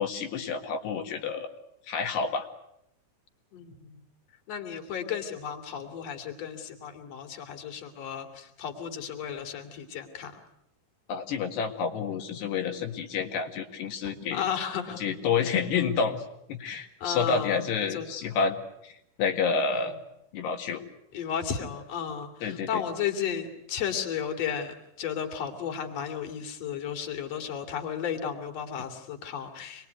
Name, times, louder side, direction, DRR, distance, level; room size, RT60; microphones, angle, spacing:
voice 1, 0.0-1.5 1.9-2.5 11.1-14.5 15.0-16.2 16.5-18.9 19.2-19.9 20.3-20.8 22.4-22.8, left 5 dB, 80° left, 4 dB, 4.0 m, -29 dB
voice 2, 3.5-4.0 4.5-10.3 14.0-15.0 15.7-15.9 17.0-17.6 17.9-18.1 19.7-19.9 21.1-29.9, left 8 dB, 40° left, 5 dB, 3.6 m, -34 dB
27.5 x 22.0 x 9.5 m, 0.80 s
omnidirectional pair, 4.8 m